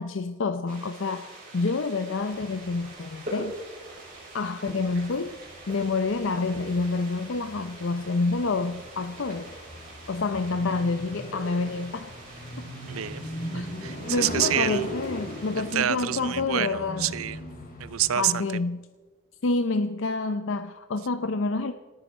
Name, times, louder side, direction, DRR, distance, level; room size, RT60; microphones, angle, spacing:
voice 1, 0.0-3.5 4.3-5.3 5.7-9.5 10.1-12.2 12.6-12.7 13.5-13.7 14.1-17.1 18.2-18.8 19.4-21.7, left 3 dB, 65° left, 0.6 m, -28 dB
sound 1, 0.7-15.7, right 1 dB, 40° right, 6.3 m, -44 dB
sound 2, 2.3-18.1, equal, 40° left, 3.2 m, -39 dB
voice 2, 12.9-14.9 15.6-17.4 17.8-18.4, right 11 dB, 85° right, 0.5 m, -28 dB
28.0 x 9.8 x 4.3 m
head